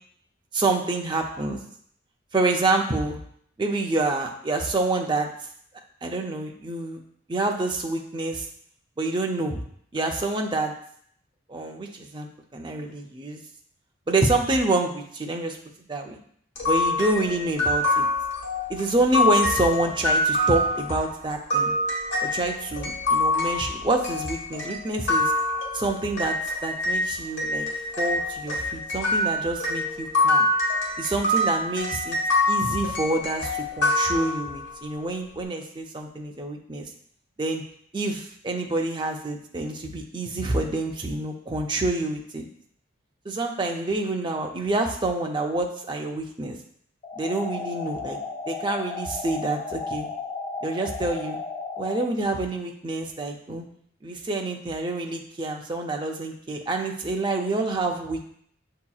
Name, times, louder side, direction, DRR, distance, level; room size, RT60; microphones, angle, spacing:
voice 1, 0.5-1.6 2.3-3.2 3.6-5.3 6.0-7.0 7.3-8.5 9.0-9.6 9.9-10.7 11.5-13.4 14.1-15.6 15.9-16.2 16.6-18.1 18.7-21.7 22.2-25.3 25.7-27.7 28.0-30.5 31.0-32.2 32.5-36.9 37.4-37.6 37.9-42.5 43.3-46.6 47.2-48.2 48.5-50.1 50.6-51.4 51.8-53.7 54.0-58.3, right 2 dB, 25° right, 2 dB, 0.5 m, -27 dB
sound 1, 16.6-27.0 27.4-34.7, left 2 dB, 60° left, 1.2 m, -25 dB
sound 2, 47.0-52.1, left 4 dB, 30° left, 0.5 m, -34 dB
6.9 x 2.8 x 2.3 m, 0.64 s
head